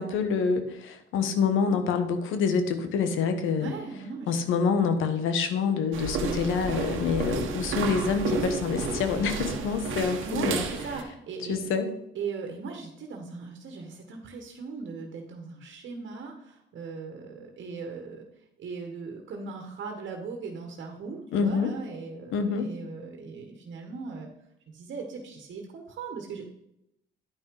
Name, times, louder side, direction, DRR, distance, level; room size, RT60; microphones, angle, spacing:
voice 1, 0.0-3.7 4.3-10.6 11.4-11.9 21.3-21.7 22.3-22.7, left 5 dB, 85° left, 9 dB, 1.2 m, -26 dB
voice 2, 3.5-4.3 10.2-11.7 12.1-18.2 18.6-24.3 24.7-26.4, right 4 dB, 65° right, 3 dB, 1.6 m, -38 dB
sound 1, 5.9-11.0, right 4 dB, 80° right, 1.3 m, -31 dB
10.5 x 5.9 x 4.9 m, 0.81 s
cardioid pair, 90°, 20 cm